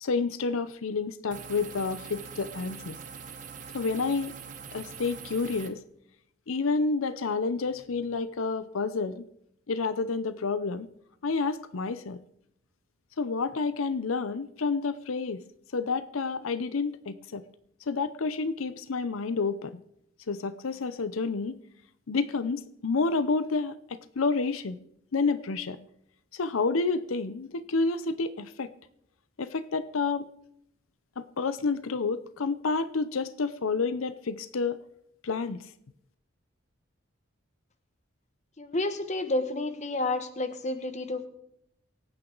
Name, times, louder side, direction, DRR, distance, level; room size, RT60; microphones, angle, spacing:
voice 1, 0.0-3.0 3.7-4.3 4.7-5.8 6.5-9.3 9.7-10.9 11.2-12.2 13.2-15.4 15.7-17.4 17.9-19.7 20.3-21.6 22.1-24.8 25.1-25.8 26.3-28.7 29.4-30.3 31.2-34.8 35.2-35.6, left 4 dB, 90° left, 14 dB, 0.6 m, -29 dB
sound 1, 1.3-5.7, right 6 dB, 40° right, 1.2 m, -43 dB
voice 2, 38.6-41.3, left 2 dB, 35° left, 10 dB, 1.1 m, -30 dB
23.5 x 9.1 x 3.9 m, 0.76 s
head